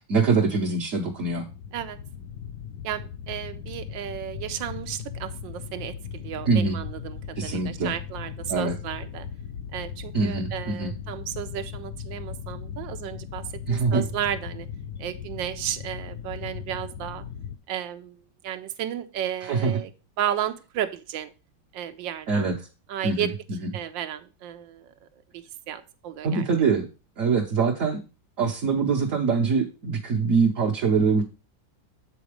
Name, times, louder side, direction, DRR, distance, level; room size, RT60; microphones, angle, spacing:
voice 1, 0.1-1.4 6.5-6.8 7.4-7.9 8.5-8.7 10.1-10.9 13.7-14.0 19.5-19.7 22.3-22.5 23.0-23.3 23.6-23.7 26.2-26.9 27.2-28.0 28.4-31.2, right 4 dB, 50° right, 0 dB, 1.1 m, -23 dB
sound 1, 1.0-17.6, left 8 dB, 65° left, 1.0 m, -38 dB
voice 2, 2.8-9.3 9.7-14.7 15.0-17.2 17.7-18.2 18.4-19.9 20.2-21.3 21.7-22.5 22.9-23.3 23.7-25.1 25.3-26.5, right 10 dB, 80° right, 10 dB, 1.3 m, -33 dB
7.8 x 4.0 x 4.9 m, 0.31 s
omnidirectional pair, 2.1 m